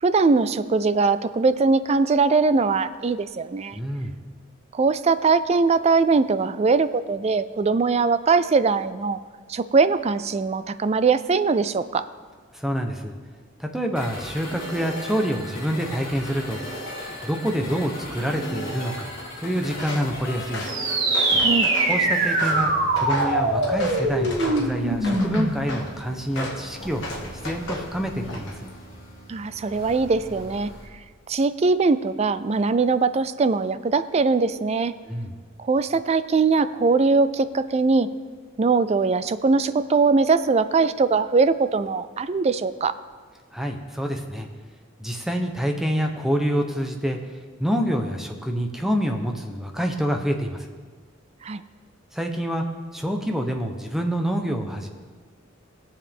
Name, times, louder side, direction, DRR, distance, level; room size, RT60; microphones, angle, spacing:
voice 1, 0.0-3.8 4.7-9.2 9.5-12.1 21.4-21.7 29.3-30.7 31.3-34.9 35.6-38.1 38.6-43.0 51.4-51.6, right 4 dB, 30° right, 13 dB, 0.4 m, -21 dB
voice 2, 3.7-4.2 12.5-13.1 13.6-16.6 17.2-19.1 19.4-20.7 21.9-27.0 27.4-28.5 35.1-35.4 43.5-44.5 45.0-47.2 47.6-50.7 52.1-52.6 52.9-54.9, equal, ahead, 3 dB, 0.8 m, -27 dB
sound 1, 14.0-30.9, equal, 45° left, 2.5 m, -38 dB
Walk footsteps, 19.8-20.1 20.5-22.0 22.4-24.7 25.0-25.9 26.3-26.6 27.0-27.9 28.3-28.7, left 1 dB, 60° left, 1.6 m, -34 dB
sound 2, 20.6-25.7, right 2 dB, 70° right, 1.8 m, -22 dB
19.5 x 7.2 x 3.6 m, 1.5 s
head